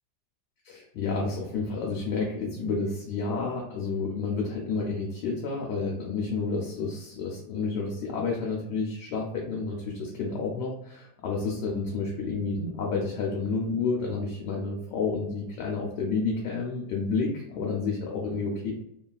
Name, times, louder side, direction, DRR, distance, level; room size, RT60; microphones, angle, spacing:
voice 1, 0.6-18.7, left 4 dB, 85° left, -2 dB, 1.2 m, -30 dB
3.1 x 2.3 x 2.2 m, 0.80 s
omnidirectional pair, 1.8 m